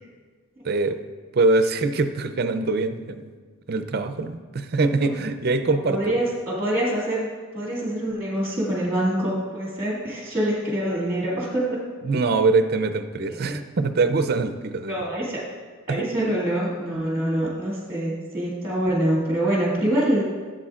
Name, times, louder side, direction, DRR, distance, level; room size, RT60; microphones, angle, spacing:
voice 1, 0.6-1.0 1.3-3.3 3.7-6.1 12.0-15.0 15.9-16.1, right 3 dB, 45° right, 10 dB, 0.5 m, -23 dB
voice 2, 5.9-11.8 13.3-13.6 14.8-15.4 15.9-20.2, right 1 dB, 10° right, -5 dB, 2.0 m, -25 dB
15.5 x 7.7 x 2.4 m, 1.5 s
head